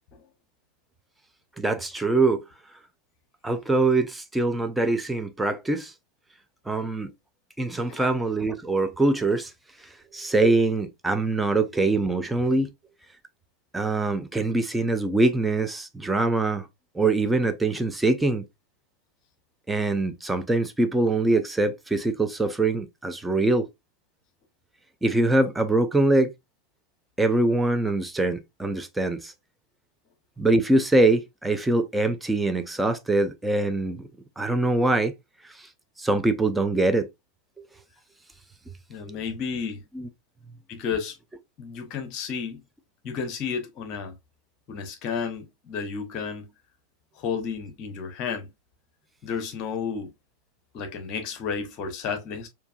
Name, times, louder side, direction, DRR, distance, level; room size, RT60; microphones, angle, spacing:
voice 1, 1.6-2.4 3.4-5.9 6.7-7.1 7.6-9.5 10.1-12.7 13.7-16.7 16.9-18.4 19.7-23.7 25.0-26.3 27.2-29.3 30.4-34.0 34.4-35.1 35.6-35.7 36.0-37.1 39.9-40.1, right 2 dB, 5° right, 0.5 m, -23 dB
voice 2, 38.9-39.8 40.7-41.2 41.6-42.6 43.0-44.2 44.7-46.5 47.2-48.5 49.2-50.1 50.7-52.5, left 6 dB, 40° left, 0.9 m, -32 dB
4.5 x 2.7 x 2.3 m
figure-of-eight pair, 90°, 0 cm